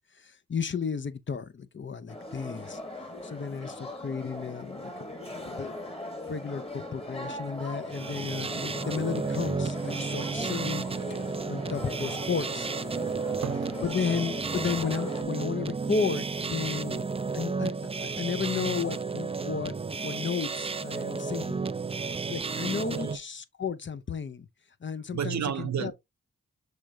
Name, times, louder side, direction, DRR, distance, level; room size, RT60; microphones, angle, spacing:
voice 1, 0.1-2.8 3.2-5.7 6.3-10.9 11.2-12.7 13.8-17.1 17.3-17.7 18.0-19.8 20.0-21.7 22.3-24.5 24.8-25.9, left 6 dB, 40° left, 0.6 m, -33 dB
sound 1, 2.1-15.2, left 1 dB, 20° left, 1.3 m, -40 dB
sound 2, 7.8-23.2, right 4 dB, 20° right, 0.3 m, -32 dB
voice 2, 13.1-13.8 14.1-14.3 16.8-16.9 22.9-23.2 25.1-25.9, right 8 dB, 70° right, 0.6 m, -33 dB
6.3 x 3.2 x 2.4 m
cardioid pair, 45°, 29 cm